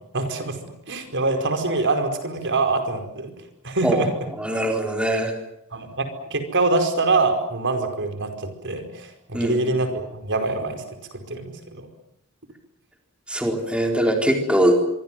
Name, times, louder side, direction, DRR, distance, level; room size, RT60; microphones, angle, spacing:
voice 1, 0.0-3.3 3.6-4.1 5.7-10.8 11.1-11.9, right 3 dB, 60° right, 7 dB, 5.0 m, -25 dB
voice 2, 4.4-5.3 9.3-9.6 13.3-14.7, right 1 dB, 5° right, 2 dB, 4.1 m, -21 dB
25.5 x 24.5 x 7.6 m, 0.77 s
head